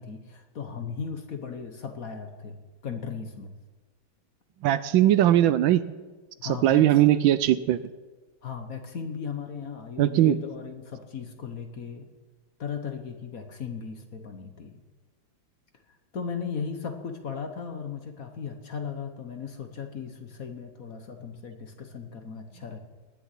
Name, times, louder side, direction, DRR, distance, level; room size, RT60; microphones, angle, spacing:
voice 1, 0.0-2.6 2.8-3.5 6.4-6.9 8.4-12.1 12.6-14.8 16.1-22.8, left 6 dB, 50° left, 6 dB, 1.4 m, -36 dB
voice 2, 4.6-5.8 6.4-7.8 10.0-10.3, right 13 dB, 75° right, 14 dB, 1.3 m, -20 dB
19.5 x 7.0 x 9.6 m, 1.3 s
omnidirectional pair, 2.3 m